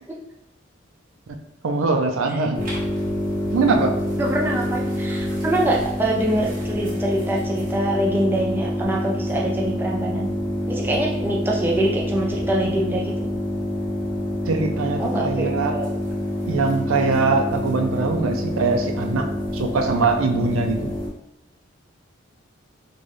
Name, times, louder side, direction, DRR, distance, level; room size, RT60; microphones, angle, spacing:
voice 1, 1.6-2.6 3.5-4.0 14.5-15.7 16.5-20.9, right 3 dB, 85° right, 4 dB, 0.4 m, -22 dB
sound 1, 2.5-21.1, left 1 dB, 40° right, 1.0 m, -27 dB
voice 2, 4.2-10.3 10.7-13.3 15.0-15.9, right 1 dB, 10° right, -2 dB, 0.4 m, -24 dB
3.9 x 2.2 x 3.2 m, 0.85 s
head